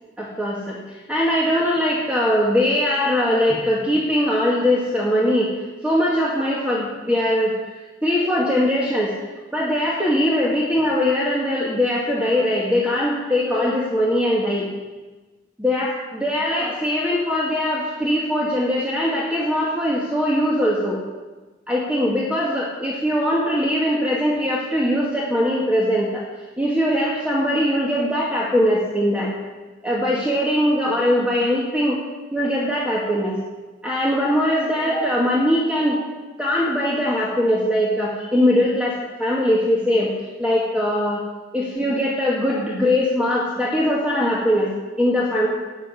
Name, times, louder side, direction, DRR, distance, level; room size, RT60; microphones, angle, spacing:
voice 1, 0.2-7.6 8.0-9.1 9.5-14.7 15.6-21.0 21.7-26.2 26.6-29.3 29.8-32.0 32.3-33.4 33.8-36.1 36.4-41.2 41.5-45.5, equal, 5° right, -4 dB, 1.9 m, -21 dB
14.0 x 8.6 x 9.7 m, 1.2 s
head